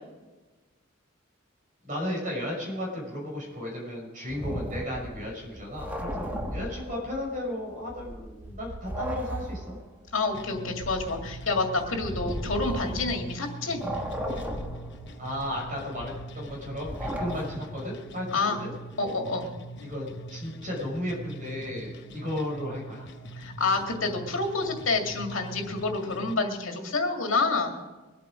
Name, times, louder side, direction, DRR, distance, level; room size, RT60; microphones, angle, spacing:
voice 1, 1.8-9.8 15.2-18.7 19.8-23.1, left 1 dB, 40° right, -2 dB, 5.9 m, -34 dB
sound 1, 4.3-7.4 7.7-13.4 13.7-17.8, equal, 10° right, 1.4 m, -36 dB
voice 2, 10.1-13.8 18.3-18.6 19.0-19.5 23.4-27.8, left 3 dB, 80° left, 3 dB, 2.2 m, -28 dB
sound 2, 10.3-26.3, right 1 dB, 60° left, 0.9 m, -42 dB
22.5 x 8.4 x 5.0 m, 1.2 s
head